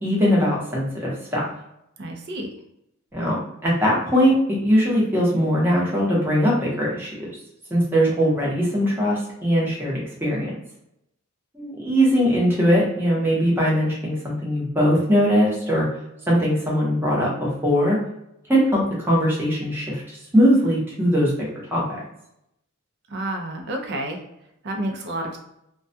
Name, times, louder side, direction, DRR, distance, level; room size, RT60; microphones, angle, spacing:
voice 1, 0.0-1.4 3.1-7.3 7.7-10.5 11.5-15.9 16.3-18.0 18.5-20.0 20.3-21.8, equal, 10° right, -5 dB, 0.8 m, -20 dB
voice 2, 2.0-2.5 23.1-24.2 24.6-25.4, right 1 dB, 55° right, 3 dB, 0.5 m, -29 dB
2.3 x 2.1 x 2.7 m, 0.80 s
head